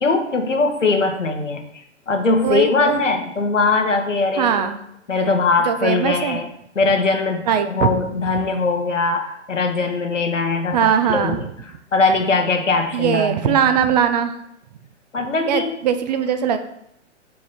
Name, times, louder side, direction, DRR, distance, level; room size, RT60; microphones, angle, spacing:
voice 1, 0.0-4.7 5.1-6.5 6.7-11.5 11.9-13.7 15.1-15.8, left 3 dB, 85° left, 5 dB, 1.2 m, -21 dB
voice 2, 2.4-3.0 4.4-4.8 5.7-6.4 7.5-8.0 10.7-11.4 12.9-14.3 15.5-16.6, right 8 dB, 35° right, 8 dB, 0.6 m, -20 dB
5.0 x 4.6 x 5.6 m, 0.77 s
figure-of-eight pair, 125°, 36 cm